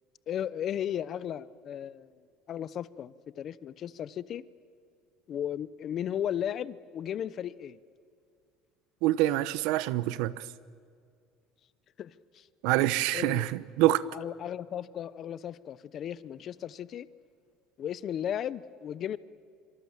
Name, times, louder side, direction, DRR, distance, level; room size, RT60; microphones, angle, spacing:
voice 1, 0.3-2.1 2.5-4.4 5.3-7.8 12.0-12.5 12.8-13.5 14.1-17.1 17.8-19.2, left 10 dB, 40° left, 0.7 m, -35 dB
voice 2, 9.0-10.3 12.6-14.0, right 16 dB, 75° right, 0.9 m, -26 dB
26.5 x 24.5 x 7.2 m
cardioid pair, 150°, 0 cm